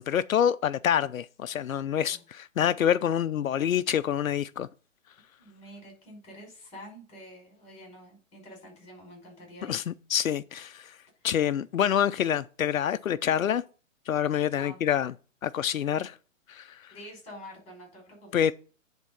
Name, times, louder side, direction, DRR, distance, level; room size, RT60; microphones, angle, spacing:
voice 1, 0.0-4.7 9.6-11.0 11.2-13.6 14.1-15.1 15.4-16.2 16.5-16.9 18.3-18.5, left 9 dB, 90° left, 0.6 m, -27 dB
voice 2, 1.9-2.2 5.4-9.8 11.2-11.3 14.5-14.8 16.9-18.5, equal, 15° left, 5.3 m, -47 dB
10.0 x 3.7 x 5.4 m
hypercardioid pair, 145°, 40 cm